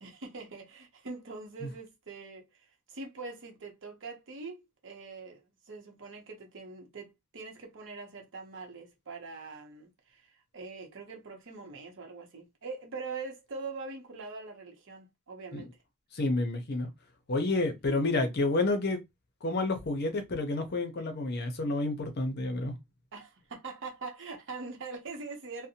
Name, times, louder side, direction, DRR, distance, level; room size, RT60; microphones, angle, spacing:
voice 1, 0.0-15.8 17.9-18.3 21.0-21.1 23.1-25.7, right 3 dB, 60° right, 0.8 m, -43 dB
voice 2, 16.1-16.9 17.3-19.0 19.4-22.8, left 2 dB, 45° left, 0.6 m, -29 dB
2.6 x 2.1 x 2.8 m
head